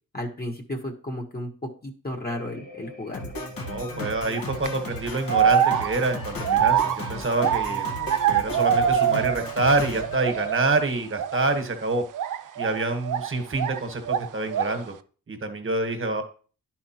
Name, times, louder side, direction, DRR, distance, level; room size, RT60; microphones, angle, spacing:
voice 1, 0.1-3.3, left 1 dB, 25° left, 0 dB, 1.2 m, -33 dB
sound 1, 2.2-10.9 11.1-11.7, equal, 60° left, 2.6 m, -50 dB
Drum kit, 3.1-10.9, left 2 dB, 75° left, 1.4 m, -36 dB
voice 2, 3.6-7.9 8.3-12.0 12.6-14.9 15.3-16.2, right 2 dB, 35° right, 7 dB, 1.2 m, -26 dB
sound 2, 4.3-4.7 5.3-9.6 9.9-10.7 11.1-11.4 12.1-13.8 14.0-14.8, right 9 dB, 60° right, 0.5 m, -24 dB
11.0 x 4.4 x 2.9 m, 0.40 s
wide cardioid pair, 115°, 35 cm